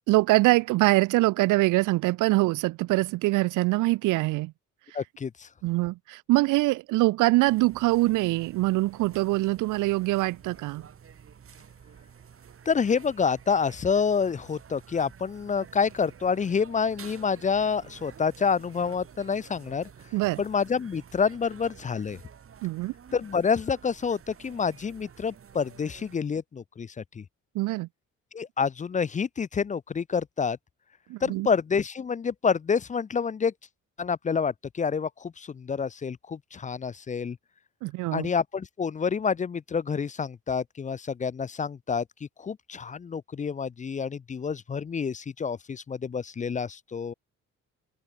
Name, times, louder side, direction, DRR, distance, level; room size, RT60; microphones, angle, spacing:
voice 1, 0.1-4.5 5.6-10.9 20.1-20.4 22.6-22.9 27.5-27.9 31.1-31.5 37.8-38.3, right 20 dB, 85° right, 0.5 m, -24 dB
voice 2, 4.9-5.5 12.7-19.9 20.4-22.2 23.1-27.2 28.3-30.6 31.2-33.5 34.0-37.4 38.1-42.0 42.4-47.1, left 6 dB, 25° left, 0.5 m, -28 dB
sound 1, 7.5-26.2, right 7 dB, 45° right, 2.8 m, -50 dB
open air
cardioid pair, 90°, 30 cm